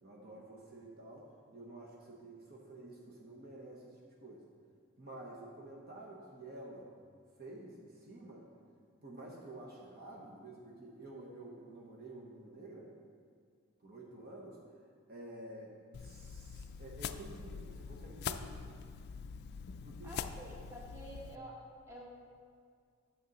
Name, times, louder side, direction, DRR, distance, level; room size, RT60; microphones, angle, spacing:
voice 1, 0.0-1.3 1.5-4.5 5.0-6.9 7.4-8.5 9.0-12.9 13.8-14.6 15.1-15.7 16.0-18.6 19.8-20.1, right 1 dB, 50° right, -3 dB, 1.0 m, -50 dB
sound 1, 15.9-21.4, left 6 dB, 50° left, 0.3 m, -44 dB
voice 2, 20.0-22.2, equal, 15° right, -4 dB, 1.4 m, -49 dB
9.3 x 6.9 x 4.0 m, 2.1 s
head